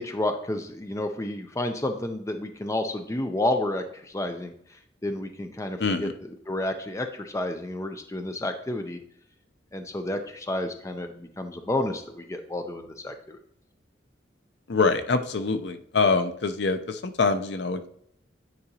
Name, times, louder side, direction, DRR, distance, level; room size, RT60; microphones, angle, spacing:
voice 1, 0.0-9.0 9.7-13.4, left 1 dB, 15° left, 6 dB, 0.5 m, -31 dB
voice 2, 5.8-6.1 14.7-17.9, left 4 dB, 65° left, 10 dB, 0.6 m, -25 dB
9.6 x 4.9 x 2.8 m, 0.67 s
head